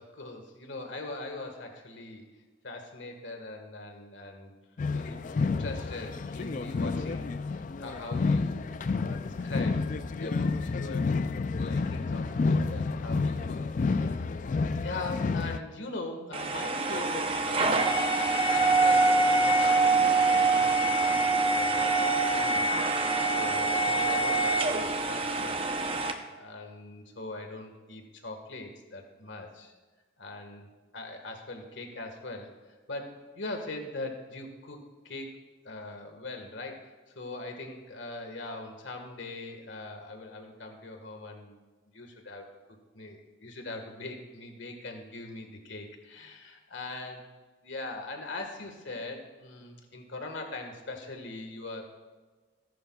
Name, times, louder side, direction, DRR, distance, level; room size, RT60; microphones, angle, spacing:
voice 1, 0.0-2.2 2.6-4.5 4.9-9.8 10.2-14.3 14.8-22.7 23.3-25.7 26.3-29.7 30.2-30.7 30.9-34.8 35.0-35.4 35.7-41.6 41.9-42.5 42.9-47.3 47.6-52.0, left 2 dB, 75° left, 4 dB, 1.6 m, -41 dB
sound 1, 4.8-15.6, left 4 dB, 40° left, 0.3 m, -30 dB
sound 2, 16.3-26.1, right 3 dB, 30° right, 0.7 m, -25 dB
18.0 x 10.0 x 2.3 m, 1.3 s
head